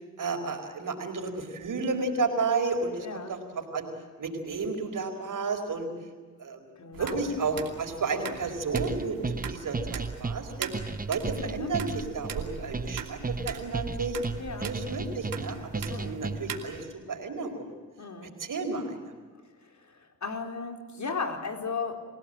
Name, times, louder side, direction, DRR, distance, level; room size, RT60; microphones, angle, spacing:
voice 1, 0.2-3.9 4.2-5.9 6.4-6.7 7.0-10.7 11.1-14.2 14.6-17.8 18.2-19.1, right 4 dB, 70° right, 6 dB, 4.7 m, -32 dB
voice 2, 3.0-3.4 6.8-7.3 11.4-11.7 14.4-14.7 15.9-16.2 18.0-18.3 19.6-22.1, left 4 dB, 60° left, 5 dB, 4.5 m, -36 dB
sound 1, 6.9-16.8, right 7 dB, 85° right, 2.7 m, -41 dB
sound 2, 8.7-16.7, right 3 dB, 25° right, 1.3 m, -34 dB
29.5 x 17.0 x 9.0 m, 1.5 s
supercardioid pair, 50°, 33 cm